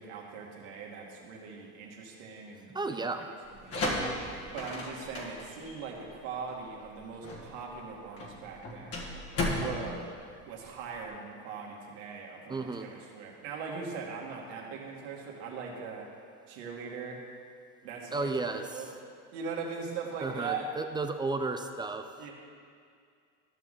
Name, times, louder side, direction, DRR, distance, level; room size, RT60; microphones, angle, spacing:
voice 1, 0.0-3.2 3.6-9.0 9.5-10.1 10.5-16.1 16.5-17.2 17.8-18.9 19.3-20.7 22.2-22.3, right 5 dB, 75° right, -1 dB, 2.0 m, -40 dB
voice 2, 2.7-3.3 12.5-12.9 18.1-18.8 20.2-22.1, right 3 dB, 15° right, 7 dB, 0.3 m, -33 dB
sound 1, 3.5-11.0, left 1 dB, 40° left, 1.9 m, -36 dB
13.5 x 6.2 x 3.8 m, 2.2 s
supercardioid pair, 110°, 36 cm